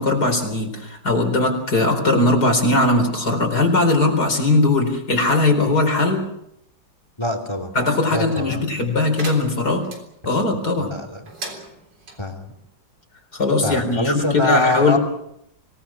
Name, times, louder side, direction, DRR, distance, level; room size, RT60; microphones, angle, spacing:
voice 1, 0.0-6.2 7.7-9.9 10.2-10.9 13.3-15.0, left 2 dB, 55° left, 4 dB, 4.9 m, -19 dB
voice 2, 7.2-7.7 8.1-8.7 10.8-11.2 12.2-12.4 13.6-15.0, left 1 dB, 15° left, 7 dB, 3.0 m, -24 dB
sound 1, 9.2-10.0 11.2-12.2, right 3 dB, 70° right, 4.4 m, -36 dB
25.5 x 18.5 x 7.3 m, 0.76 s
omnidirectional pair, 2.0 m